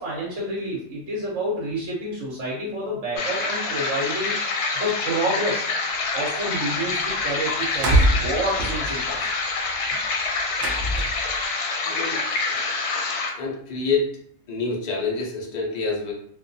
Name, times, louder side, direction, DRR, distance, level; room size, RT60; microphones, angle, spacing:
voice 1, 0.0-4.4 4.7-5.7 6.1-9.3, right 1 dB, 60° right, -5 dB, 1.0 m, -28 dB
sound 1, 3.2-13.3, left 3 dB, 90° left, 1.1 m, -26 dB
sound 2, 6.8-6.9 7.1-7.3 7.6-11.4, right 1 dB, 85° right, 0.5 m, -23 dB
voice 2, 11.8-12.2 13.4-14.1 14.5-16.1, left 4 dB, 65° left, -3 dB, 0.4 m, -26 dB
2.5 x 2.3 x 2.6 m, 0.62 s
omnidirectional pair, 1.6 m